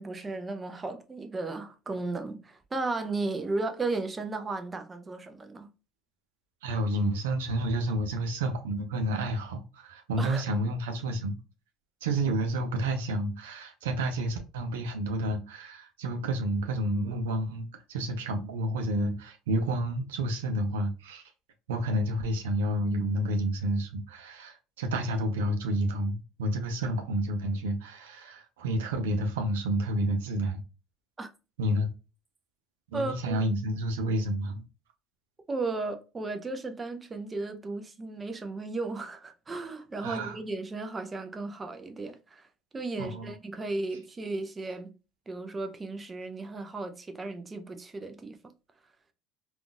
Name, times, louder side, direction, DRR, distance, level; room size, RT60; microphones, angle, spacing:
voice 1, 0.0-5.7 10.2-10.4 31.2-31.3 32.9-33.4 35.5-42.5 42.7-44.9 45.3-48.5, right 3 dB, 25° right, 0.6 m, -35 dB
voice 2, 6.6-11.4 12.0-21.2 21.7-30.6 31.6-31.9 32.9-34.6 40.0-40.4 43.0-43.3, right 1 dB, 90° right, 0.6 m, -30 dB
3.6 x 2.5 x 2.2 m
supercardioid pair, 80°, 0 cm